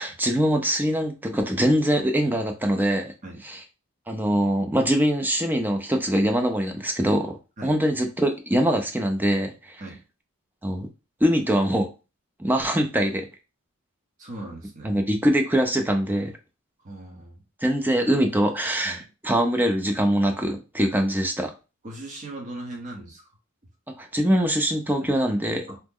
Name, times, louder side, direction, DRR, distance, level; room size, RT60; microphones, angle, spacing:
voice 1, 0.0-3.1 3.4-3.6 4.1-9.8 10.6-10.9 11.2-11.9 12.4-13.3 14.8-16.3 17.6-21.5 24.0-25.7, equal, 10° right, 4 dB, 0.4 m, -23 dB
voice 2, 14.2-15.0 16.8-17.4 18.8-19.0 21.8-23.2 25.0-25.1 25.7-25.8, right 1 dB, 35° right, 0 dB, 0.9 m, -38 dB
2.9 x 2.1 x 3.6 m, 0.31 s
head